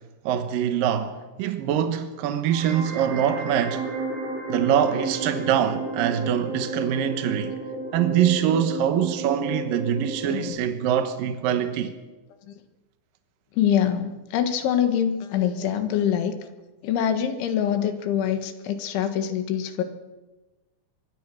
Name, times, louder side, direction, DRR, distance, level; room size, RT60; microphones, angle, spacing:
voice 1, 0.3-3.9 4.5-7.6 7.9-11.9, right 9 dB, 70° right, 2.3 m, -24 dB
sound 1, 2.5-10.5, right 3 dB, 85° right, 7.9 m, -32 dB
voice 2, 10.2-10.6 12.5-12.6 13.5-16.4 16.8-19.8, left 9 dB, 85° left, 4.1 m, -25 dB
25.0 x 23.0 x 6.4 m
omnidirectional pair, 5.3 m